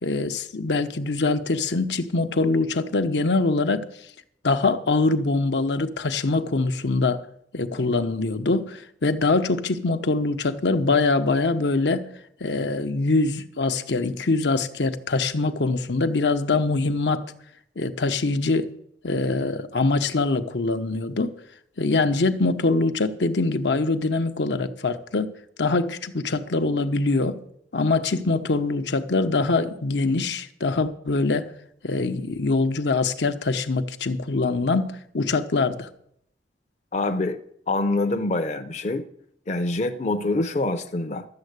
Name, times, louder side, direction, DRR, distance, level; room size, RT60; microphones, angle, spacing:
voice 1, 0.0-3.9 4.4-7.2 7.5-12.1 12.4-17.2 17.8-18.7 19.0-21.3 21.8-25.3 25.6-27.4 27.7-31.5 31.8-35.9, left 3 dB, 75° left, 0.8 m, -23 dB
voice 2, 36.9-37.4 37.7-39.1 39.5-41.3, left 2 dB, 40° left, 0.6 m, -25 dB
12.5 x 7.4 x 8.0 m
head